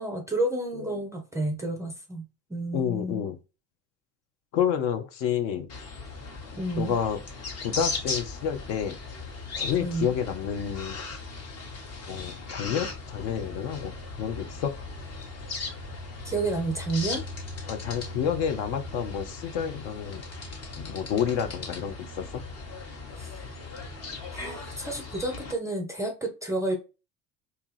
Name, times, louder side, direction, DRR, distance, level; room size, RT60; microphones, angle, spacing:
voice 1, 0.0-2.2 2.5-3.2 6.6-7.0 9.8-10.1 16.2-17.2 23.2-23.3 24.3-26.8, right 2 dB, 5° right, 0.5 m, -30 dB
voice 2, 2.7-3.4 4.5-5.7 6.8-7.2 7.6-9.0 9.6-11.0 12.1-13.9 14.2-14.7 17.7-20.2 20.8-22.4, left 8 dB, 45° left, 0.5 m, -29 dB
sound 1, 5.7-25.5, left 3 dB, 30° left, 0.9 m, -38 dB
2.8 x 2.2 x 3.1 m
figure-of-eight pair, 65°, 49 cm